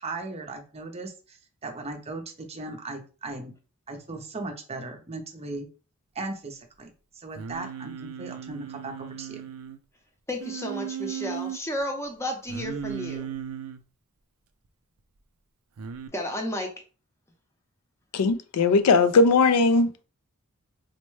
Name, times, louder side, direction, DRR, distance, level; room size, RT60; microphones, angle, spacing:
voice 1, 0.0-3.5 3.9-5.7 6.1-9.4, right 3 dB, 30° right, 0.6 m, -37 dB
Singing, 7.3-9.8 10.4-11.6 12.5-13.8 15.8-16.1, right 8 dB, 70° right, 0.4 m, -36 dB
voice 2, 10.3-13.3 16.1-16.7, left 1 dB, 10° left, 0.7 m, -32 dB
voice 3, 18.1-20.0, left 4 dB, 80° left, 0.4 m, -19 dB
4.2 x 2.1 x 3.1 m
head